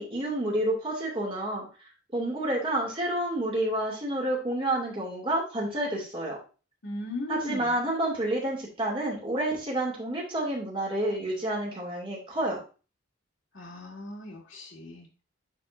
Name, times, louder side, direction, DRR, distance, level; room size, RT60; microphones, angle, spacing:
voice 1, 0.0-1.7 2.1-6.4 7.3-12.6, right 1 dB, 25° right, -3 dB, 2.6 m, -29 dB
voice 2, 6.8-7.8 13.5-15.2, left 2 dB, 75° left, -4 dB, 2.8 m, -38 dB
10.0 x 4.4 x 2.6 m, 0.34 s
head